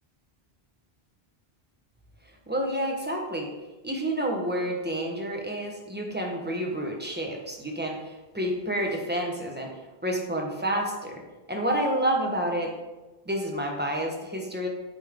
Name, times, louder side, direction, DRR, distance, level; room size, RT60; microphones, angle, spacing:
voice 1, 2.5-3.5 3.8-11.2 11.5-12.7 13.3-14.7, right 1 dB, 10° right, 0 dB, 1.1 m, -29 dB
8.2 x 5.4 x 3.7 m, 1.1 s
omnidirectional pair, 1.0 m